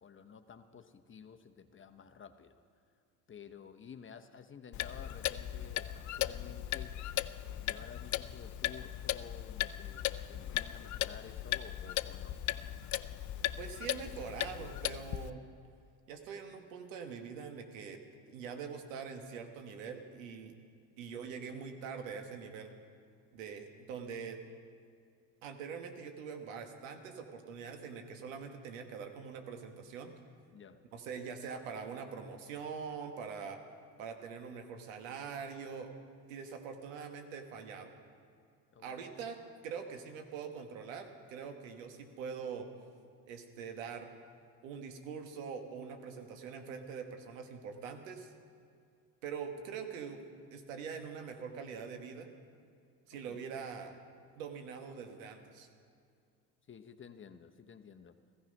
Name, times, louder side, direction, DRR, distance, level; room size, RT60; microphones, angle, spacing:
voice 1, 0.0-2.5 3.3-7.0 7.6-12.4 30.5-30.9 38.7-38.9 53.1-53.4 56.7-58.2, left 7 dB, 30° left, 8 dB, 1.0 m, -52 dB
Clock, 4.7-15.3, left 13 dB, 50° left, 0.6 m, -37 dB
voice 2, 13.6-15.4 16.1-18.0 18.3-20.5 21.0-22.7 23.3-24.4 25.4-30.1 30.9-33.6 34.0-35.9 36.3-37.9 38.8-39.4 39.6-42.7 43.3-44.1 44.6-48.3 49.2-50.2 50.5-52.3 53.1-54.0 54.3-55.7, right 6 dB, 90° right, 5 dB, 1.6 m, -43 dB
15.5 x 15.5 x 5.4 m, 2.3 s
hypercardioid pair, 70°, 38 cm